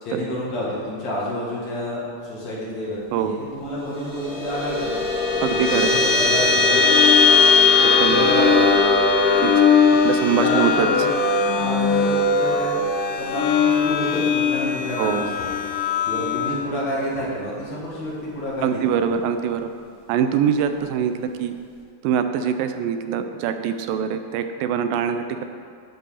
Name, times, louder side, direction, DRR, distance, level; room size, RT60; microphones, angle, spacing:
voice 1, 0.0-4.9 5.5-6.9 7.9-8.6 10.4-11.1 11.4-12.8 13.2-15.5 16.1-18.8, left 1 dB, 55° left, -6 dB, 2.9 m, -29 dB
sound 1, 3.9-14.7, left 3 dB, 5° right, 1.0 m, -21 dB
voice 2, 5.4-5.9 7.8-8.3 9.4-9.5 10.0-10.9 15.0-15.3 18.6-19.7 20.1-21.6 22.0-25.4, right 8 dB, 90° right, 8 dB, 2.4 m, -23 dB
sound 2, 6.4-16.7, left 5 dB, 80° left, 1.6 m, -21 dB
9.2 x 5.4 x 7.1 m, 2.2 s
omnidirectional pair, 4.0 m